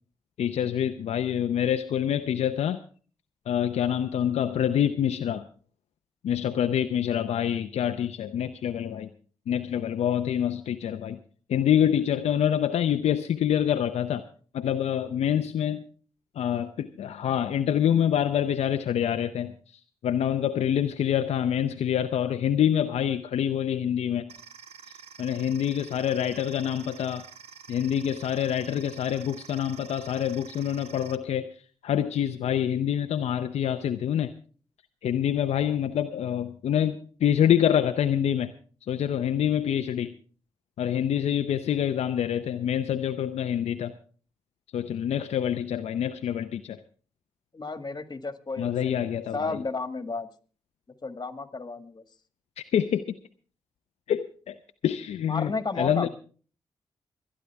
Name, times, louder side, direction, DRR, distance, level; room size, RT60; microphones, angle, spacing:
voice 1, 0.4-2.8 3.5-5.4 6.2-9.1 9.5-11.2 11.5-14.2 14.5-15.9 16.4-19.6 20.0-24.3 25.2-27.2 27.7-31.5 31.8-34.3 35.0-38.5 38.9-40.2 40.8-43.9 44.7-46.8 48.6-49.6 52.7-53.2 54.1-54.6 54.8-56.1, left 9 dB, 75° left, 7 dB, 0.6 m, -26 dB
sound 1, 24.3-31.2, right 6 dB, 70° right, 1.0 m, -48 dB
voice 2, 47.5-50.3 51.0-52.0 55.3-56.1, left 3 dB, 40° left, 9 dB, 1.9 m, -33 dB
26.5 x 9.9 x 3.5 m, 0.41 s
supercardioid pair, 40°, 11 cm